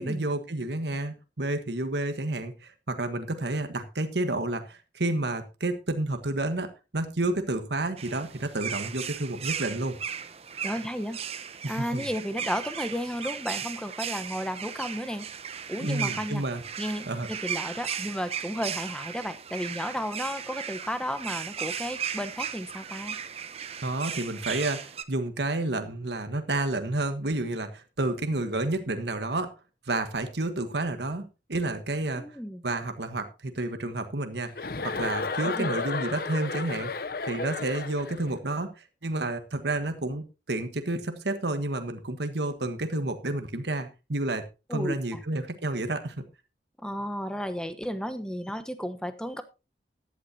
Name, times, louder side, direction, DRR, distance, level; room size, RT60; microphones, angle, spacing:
voice 1, 0.0-10.0 11.6-12.0 15.8-16.6 17.1-17.3 23.8-29.5 29.9-32.3 32.6-36.9 37.3-44.4 44.7-46.2, right 2 dB, 75° right, 1.4 m, -30 dB
sound 1, 8.0-25.0, right 8 dB, 35° right, 0.8 m, -36 dB
voice 2, 10.6-11.2 11.7-15.3 15.7-16.4 16.8-23.2 32.2-32.6 35.4-35.7 44.7-45.2 46.8-49.4, equal, 5° left, 1.0 m, -33 dB
Chuckle chortle, 34.6-38.3, left 4 dB, 55° left, 0.8 m, -32 dB
15.0 x 11.0 x 2.8 m
head